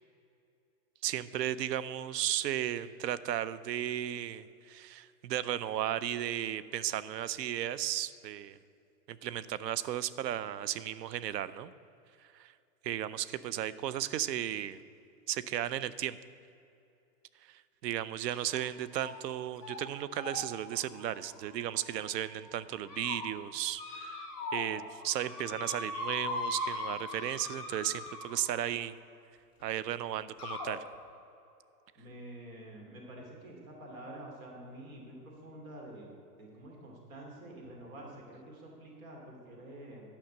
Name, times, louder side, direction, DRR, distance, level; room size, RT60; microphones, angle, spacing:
voice 1, 1.0-8.6 9.1-11.7 12.3-12.5 12.8-14.8 15.3-16.2 17.5-24.3 24.5-29.0 29.6-30.8, right 11 dB, 90° right, 17 dB, 0.7 m, -35 dB
sound 1, 18.3-18.6 18.9-19.3 19.6-19.8 20.1-22.1 22.6-23.2 23.7-24.7 25.0-28.6 29.6-29.7 30.4-30.7, left 2 dB, ahead, 2.3 m, -40 dB
voice 2, 32.0-40.1, right 1 dB, 55° right, 0 dB, 2.7 m, -48 dB
10.5 x 5.7 x 7.7 m, 2.6 s
supercardioid pair, 180°, 48 cm